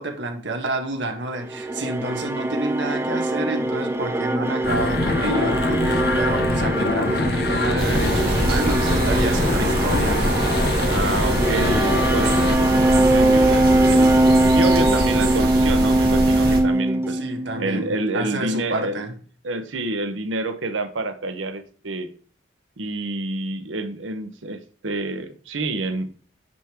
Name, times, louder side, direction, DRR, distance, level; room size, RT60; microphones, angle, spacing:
voice 1, 0.0-10.4 17.1-19.1, right 2 dB, 70° right, 1.3 m, -29 dB
sound 1, 1.4-17.7, right 1 dB, 15° right, 0.4 m, -21 dB
sound 2, 4.6-12.5, left 2 dB, 55° left, 0.8 m, -25 dB
sound 3, 7.8-16.6, right 1 dB, 50° right, 2.1 m, -24 dB
voice 2, 10.9-14.3 14.5-17.2 17.6-19.0 19.4-22.1 22.8-26.1, right 2 dB, 85° right, 1.0 m, -28 dB
9.2 x 3.7 x 2.9 m
head